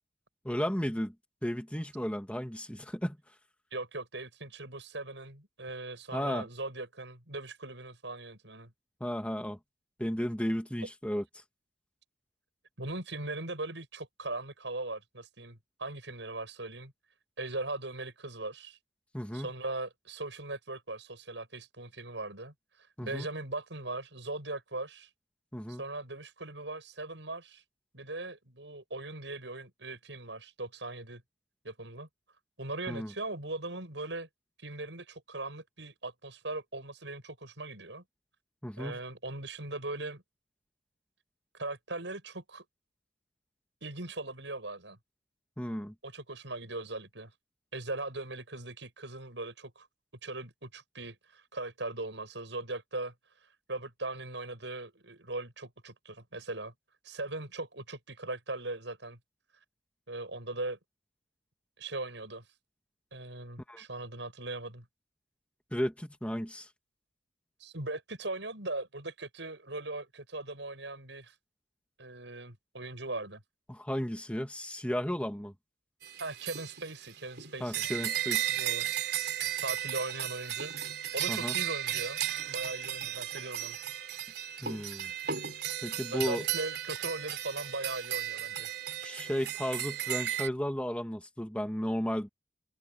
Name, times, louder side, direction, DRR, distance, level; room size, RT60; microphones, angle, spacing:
voice 1, 0.4-1.1 1.4-3.2 6.1-6.5 9.0-9.6 10.0-11.2 19.1-19.5 23.0-23.3 25.5-25.8 32.9-33.1 38.6-39.0 45.6-45.9 63.7-63.8 65.7-66.7 73.7-75.5 77.6-78.5 81.3-81.5 84.6-85.1 85.8-86.4 89.0-92.3, equal, 5° left, 2.0 m, -34 dB
voice 2, 3.7-8.7 12.8-16.9 17.4-18.8 19.3-25.1 25.7-27.6 27.9-31.2 31.6-32.1 32.6-34.3 34.6-38.0 38.8-40.2 41.5-42.6 43.8-45.0 46.0-47.3 47.7-49.9 50.2-53.1 53.4-56.7 57.0-59.2 60.1-60.8 61.8-62.4 63.1-64.9 67.6-71.3 72.0-73.4 76.2-77.9 78.5-78.9 79.6-80.7 81.1-82.2 82.5-83.8 86.1-88.7, right 2 dB, 80° right, 7.4 m, -39 dB
sound 1, 76.0-90.5, right 11 dB, 65° right, 3.7 m, -35 dB
open air
head